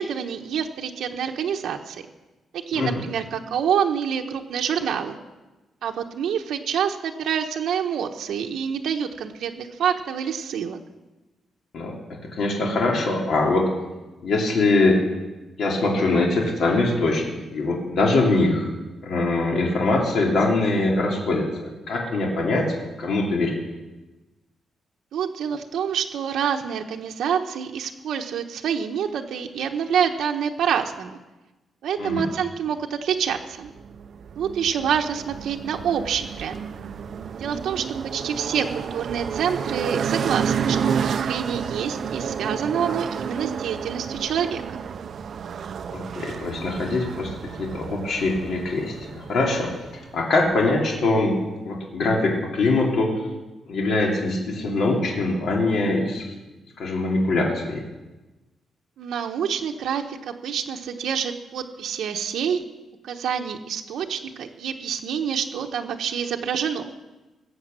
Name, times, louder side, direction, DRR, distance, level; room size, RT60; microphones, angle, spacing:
voice 1, 0.0-2.0 2.7-5.2 5.8-10.8 25.1-31.2 31.8-33.7 34.4-36.6 37.4-37.8 38.1-40.9 41.3-44.6 59.0-62.6 63.0-66.9, right 8 dB, 75° right, 3 dB, 1.0 m, -27 dB
voice 2, 12.3-13.7 14.2-15.0 15.6-18.7 19.0-23.5 32.0-32.2 45.9-49.7 50.1-51.4 51.6-53.1 53.7-56.3 56.8-57.8, left 2 dB, 55° left, -1 dB, 2.7 m, -23 dB
sound 1, 33.6-51.1, right 7 dB, 45° right, 0.5 m, -31 dB
18.5 x 8.2 x 7.6 m, 1.1 s
wide cardioid pair, 170°, 0 cm